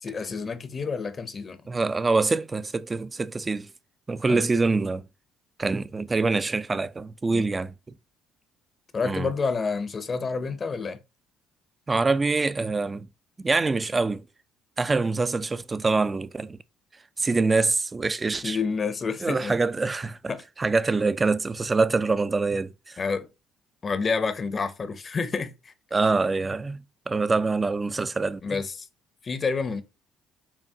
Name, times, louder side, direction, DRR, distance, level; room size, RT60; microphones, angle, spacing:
voice 1, 0.0-1.6 4.3-4.4 7.3-7.4 8.9-11.0 18.4-19.6 20.3-20.4 23.0-23.3 23.8-25.7 28.4-28.9 29.2-29.8, left 4 dB, 40° left, 0.6 m, -29 dB
voice 2, 1.7-3.7 4.1-5.1 5.6-7.7 9.0-9.3 11.9-13.1 13.4-14.2 14.8-16.6 17.2-18.6 19.2-20.2 20.6-23.0 25.9-28.6, right 3 dB, 25° right, 0.3 m, -25 dB
5.7 x 2.2 x 2.7 m
supercardioid pair, 65°, 0 cm